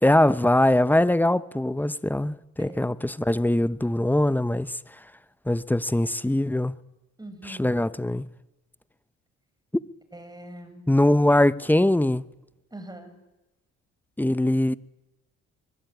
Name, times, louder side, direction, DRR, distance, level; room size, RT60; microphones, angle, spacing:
voice 1, 0.0-5.0 5.5-6.7 7.4-8.3 10.9-12.3 14.2-14.8, left 1 dB, 5° left, 0.9 m, -22 dB
voice 2, 7.2-7.8 10.1-10.9 12.7-13.1, right 1 dB, 15° right, 6.6 m, -42 dB
24.0 x 22.5 x 9.5 m
cardioid pair, 90°, 30 cm